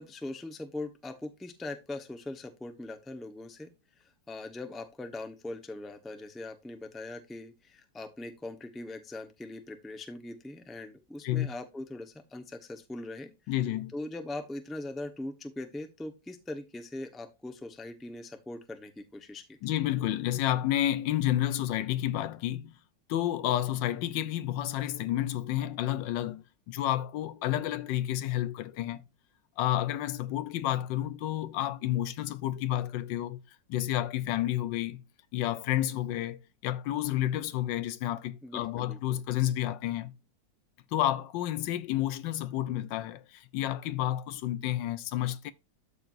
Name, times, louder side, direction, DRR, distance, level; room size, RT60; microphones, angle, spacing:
voice 1, 0.0-3.7 4.3-13.3 13.9-19.6 38.4-39.0, left 2 dB, ahead, 0.6 m, -41 dB
voice 2, 13.5-13.9 19.6-22.7 23.1-29.0 29.6-33.4 33.7-35.0 35.3-40.1 40.9-45.5, left 13 dB, 80° left, 1.4 m, -30 dB
13.0 x 4.6 x 2.6 m
omnidirectional pair, 2.0 m